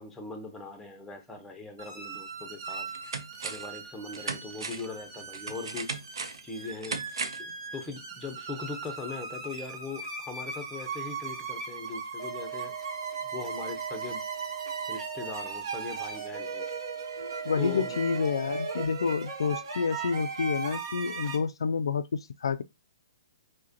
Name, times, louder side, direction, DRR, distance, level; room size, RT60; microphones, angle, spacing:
voice 1, 0.0-2.9 3.4-5.9 6.4-7.0 7.4-12.7 13.2-14.2 14.9-16.7 17.6-18.0, left 4 dB, 10° left, 0.7 m, -40 dB
sound 1, 1.8-21.4, right 4 dB, 55° right, 1.1 m, -38 dB
sound 2, 2.1-2.2 2.7-3.8 4.1-7.5 7.9-8.0, right 4 dB, 85° right, 0.6 m, -37 dB
sound 3, 12.2-18.9, right 8 dB, 40° right, 0.7 m, -40 dB
voice 2, 17.4-22.6, left 5 dB, 80° left, 0.3 m, -29 dB
4.7 x 2.2 x 2.8 m
hypercardioid pair, 140°, 3 cm